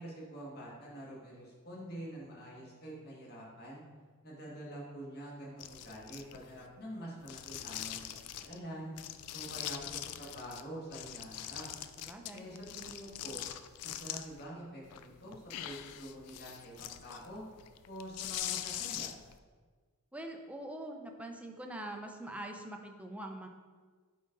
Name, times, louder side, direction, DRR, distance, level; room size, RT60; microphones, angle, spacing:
voice 1, 0.0-3.8 4.2-8.9 9.3-11.7 12.3-13.4 13.8-17.4 17.8-19.1, equal, 45° left, -4 dB, 1.8 m, -46 dB
sound 1, 5.6-6.6 7.2-8.6 9.0-10.6 10.9-14.4 14.8-19.4, left 11 dB, 85° left, 0.4 m, -43 dB
voice 2, 12.0-12.5 20.1-23.5, right 1 dB, 5° right, 3 dB, 0.5 m, -43 dB
9.2 x 3.8 x 3.8 m, 1.5 s
head